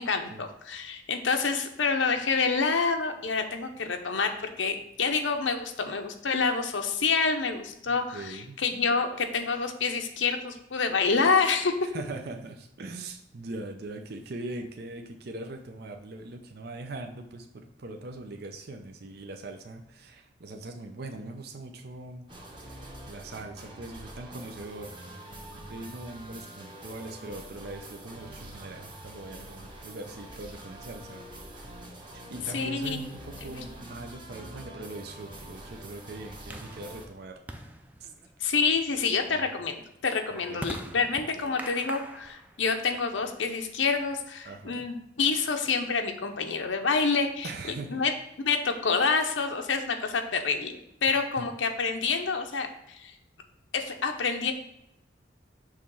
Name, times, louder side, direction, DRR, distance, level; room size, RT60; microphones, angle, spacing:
voice 1, 0.0-4.3 4.6-11.7 32.5-33.0 38.4-47.5 47.9-48.1 48.4-50.7 51.0-53.1 53.7-54.5, left 5 dB, 90° left, 5 dB, 0.8 m, -27 dB
voice 2, 7.9-8.6 11.8-22.2 22.6-24.9 25.5-31.2 31.5-37.4 38.0-38.1 39.3-39.4 40.3-40.6 44.4-44.9 47.4-48.0 51.4-51.5, right 2 dB, 55° right, 4 dB, 0.6 m, -41 dB
sound 1, 22.3-37.1, right 1 dB, 25° right, 1.1 m, -45 dB
sound 2, 36.5-44.2, right 1 dB, 10° right, 0.5 m, -46 dB
6.6 x 3.1 x 5.4 m, 0.79 s
head